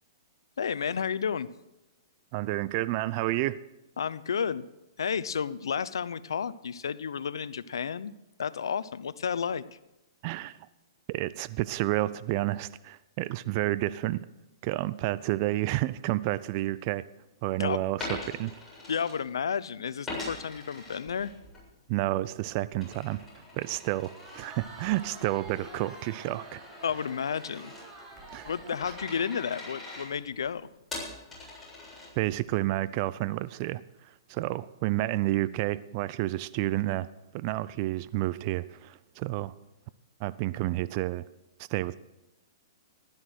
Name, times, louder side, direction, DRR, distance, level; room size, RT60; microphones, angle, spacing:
voice 1, 0.6-1.5 4.0-4.6 5.0-8.1 8.4-9.6 17.6-17.8 18.9-21.3 26.8-27.7 28.4-30.7, left 7 dB, 85° left, 16 dB, 0.8 m, -31 dB
voice 2, 2.3-3.6 10.2-10.6 11.1-14.3 14.6-17.0 17.4-18.5 21.9-23.2 23.5-26.6 28.3-28.5 32.2-37.1 37.3-39.5 40.2-41.2 41.7-42.0, right 17 dB, 40° right, 17 dB, 0.6 m, -30 dB
Coin (dropping), 18.0-19.6 20.1-21.6 22.0-32.5, left 2 dB, 10° left, 7.6 m, -43 dB
Crowd, 24.0-30.0, right 2 dB, 15° right, 3.6 m, -48 dB
15.5 x 12.5 x 6.4 m, 0.98 s
hypercardioid pair, 135°, 2 cm